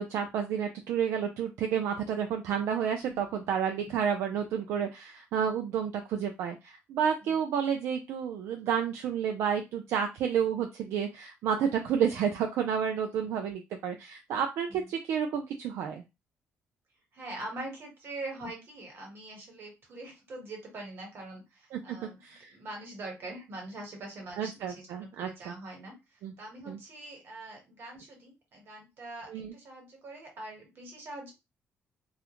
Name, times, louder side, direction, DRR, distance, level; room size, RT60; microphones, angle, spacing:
voice 1, 0.0-16.0 21.7-22.0 22.2-22.6 24.4-25.5 26.2-26.3 26.7-26.8 29.3-29.5, right 8 dB, 85° right, 4 dB, 0.3 m, -30 dB
voice 2, 3.0-3.5 3.8-4.0 7.2-7.4 11.9-12.0 13.4-13.5 14.7-14.9 17.1-22.2 22.5-31.3, right 2 dB, 55° right, 1 dB, 1.2 m, -43 dB
2.3 x 2.1 x 2.9 m, 0.24 s
cardioid pair, 115°, 5 cm